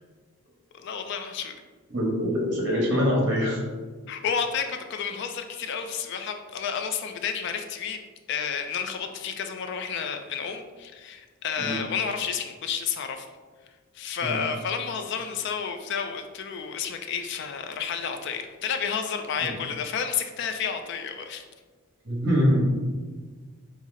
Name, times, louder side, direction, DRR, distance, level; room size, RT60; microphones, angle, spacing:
voice 1, 0.7-1.6 4.1-8.0 8.3-13.3 13.9-21.4, left 7 dB, 50° left, 6 dB, 0.3 m, -31 dB
voice 2, 1.9-3.6 11.6-11.8 14.2-14.4 19.4-19.5 22.0-22.6, equal, 55° right, -3 dB, 1.3 m, -24 dB
5.5 x 2.0 x 3.6 m, 1.4 s
head